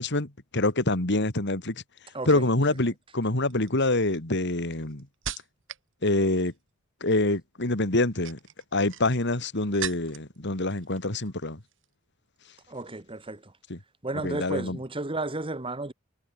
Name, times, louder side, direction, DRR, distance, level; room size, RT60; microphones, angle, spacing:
voice 1, 0.0-1.8 2.3-5.1 6.0-6.5 7.0-8.4 8.7-11.6 13.7-13.8 14.2-14.8, left 2 dB, 60° left, 2.9 m, -26 dB
voice 2, 2.1-2.5 12.7-13.5 14.0-15.9, right 2 dB, 25° right, 1.7 m, -33 dB
sound 1, 2.4-2.8 3.5-5.9 6.2-6.7 7.9-10.4 10.7-11.3 11.6-11.9, right 8 dB, 65° right, 5.3 m, -40 dB
head